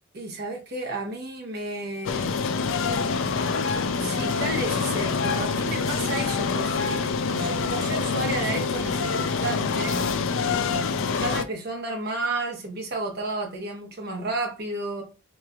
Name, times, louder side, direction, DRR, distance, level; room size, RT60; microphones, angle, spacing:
voice 1, 0.1-2.3 4.0-10.0 11.1-15.0, right 2 dB, 50° right, 1.0 m, -32 dB
sound 1, 2.1-11.4, left 5 dB, 65° left, 0.3 m, -26 dB
4.8 x 3.0 x 2.3 m
head